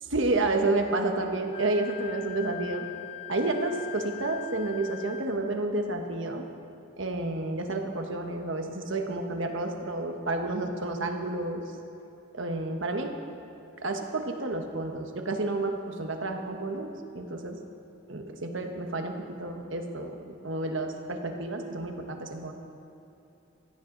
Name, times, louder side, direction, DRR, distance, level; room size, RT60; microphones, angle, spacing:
voice 1, 0.1-2.8 3.3-6.4 7.0-11.6 12.3-13.1 13.8-17.6 18.1-22.5, right 2 dB, 60° right, 4 dB, 1.3 m, -30 dB
Wind instrument woodwind instrument, 1.5-5.4, left 12 dB, 25° left, 0.6 m, -42 dB
16.5 x 15.0 x 4.0 m, 3.0 s
head